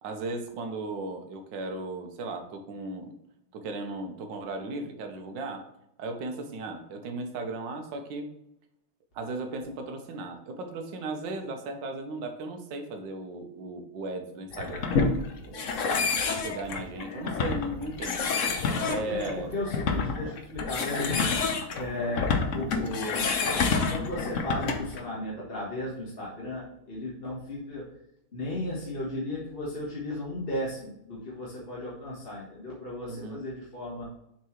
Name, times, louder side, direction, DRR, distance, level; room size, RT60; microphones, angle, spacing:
voice 1, 0.0-3.1 3.5-5.7 6.0-8.3 9.1-15.2 15.4-15.8 16.2-19.5 33.1-33.4, right 2 dB, 65° right, 5 dB, 1.5 m, -36 dB
sound 1, 14.5-25.0, left 4 dB, 60° left, 0.8 m, -28 dB
voice 2, 18.4-23.3 23.9-27.9 28.3-34.0, left 1 dB, 30° left, -5 dB, 1.4 m, -35 dB
7.2 x 4.6 x 3.1 m, 0.80 s
omnidirectional pair, 2.3 m